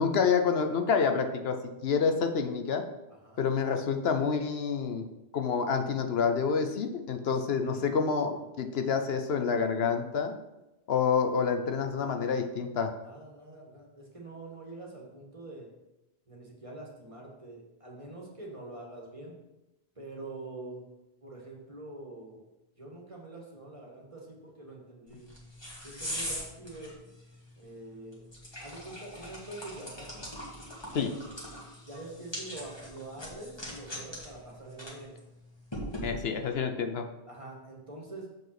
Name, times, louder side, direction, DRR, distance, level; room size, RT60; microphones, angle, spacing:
voice 1, 0.0-2.8 3.4-5.0 5.3-10.3 10.9-12.9 30.9-31.1 36.0-37.0, left 6 dB, 75° left, 7 dB, 1.0 m, -28 dB
voice 2, 3.1-3.4 7.6-7.9 12.0-12.4 13.0-15.7 16.3-19.3 20.0-20.8 21.2-22.4 22.8-25.4 25.8-27.0 27.6-28.2 28.6-30.3 31.9-35.1 37.3-38.3, right 2 dB, 30° right, -2 dB, 1.9 m, -45 dB
sound 1, 25.1-36.5, equal, 25° left, 2.1 m, -42 dB
7.4 x 5.4 x 5.9 m, 0.96 s
omnidirectional pair, 1.1 m